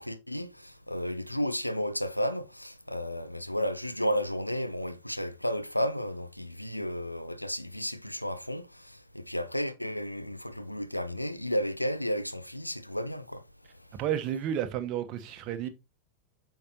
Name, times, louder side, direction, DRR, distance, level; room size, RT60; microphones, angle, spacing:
voice 1, 0.0-13.4, equal, 90° left, 0.6 m, -33 dB
voice 2, 13.9-15.7, right 10 dB, 40° right, 1.0 m, -31 dB
8.6 x 5.7 x 2.9 m
figure-of-eight pair, 90°, 0 cm